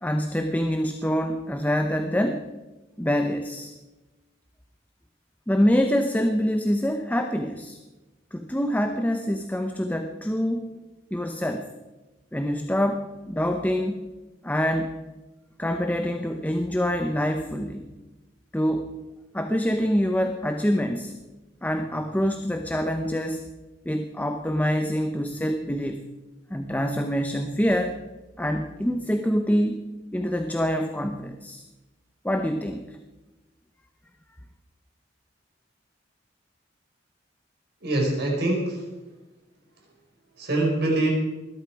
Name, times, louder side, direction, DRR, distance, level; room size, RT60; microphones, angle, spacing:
voice 1, 0.0-2.5 3.0-3.7 5.5-7.8 8.3-10.7 11.1-11.7 12.3-14.0 14.4-15.0 15.6-17.9 18.5-18.9 19.3-21.1 21.6-23.4 23.8-26.1 26.5-28.0 28.4-29.8 30.1-31.6 32.2-33.0, equal, 10° left, 6 dB, 0.8 m, -25 dB
voice 2, 37.8-38.9 40.4-41.1, right 2 dB, 60° right, 0 dB, 5.2 m, -24 dB
21.0 x 11.5 x 4.9 m, 1.1 s
head